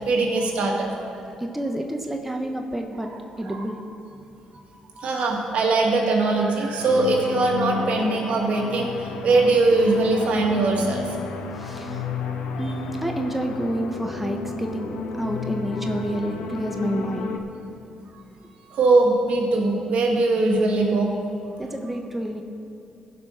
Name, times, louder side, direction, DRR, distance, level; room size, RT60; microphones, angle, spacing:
voice 1, 0.1-1.1 3.5-3.7 5.0-8.9 9.2-11.1 12.3-12.6 18.7-21.1, right 3 dB, 65° right, 1 dB, 1.8 m, -21 dB
voice 2, 1.4-3.1 3.4-3.8 11.6-12.1 12.6-17.5 21.6-22.4, right 1 dB, 5° right, 3 dB, 1.1 m, -29 dB
sound 1, 6.8-17.4, left 5 dB, 85° left, 0.8 m, -32 dB
15.0 x 5.3 x 6.3 m, 2.7 s
supercardioid pair, 70°, 2 cm